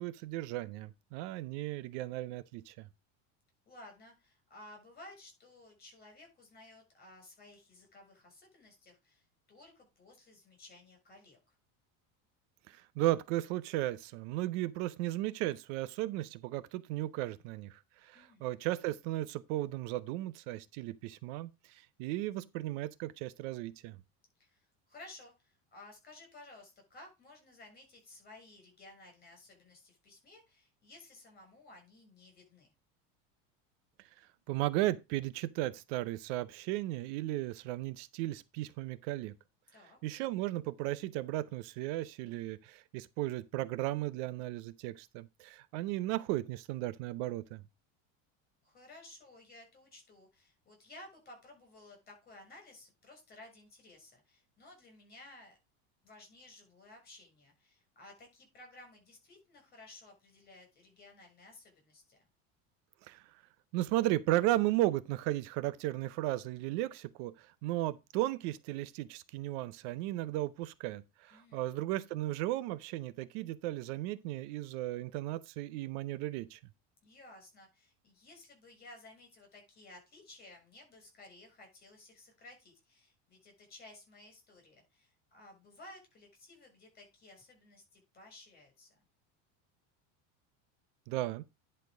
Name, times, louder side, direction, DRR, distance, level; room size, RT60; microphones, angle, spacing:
voice 1, 0.0-2.9 12.7-24.0 34.5-39.3 40.0-47.6 63.1-63.2 63.7-76.6 91.1-91.4, right 16 dB, 70° right, 0.7 m, -35 dB
voice 2, 3.7-11.4 18.1-18.5 24.4-24.6 24.9-32.7 39.7-40.0 48.6-55.6 56.0-62.2 71.3-71.7 77.0-89.0, left 2 dB, 25° left, 6.7 m, -56 dB
10.5 x 4.4 x 4.9 m
cardioid pair, 155°, 37 cm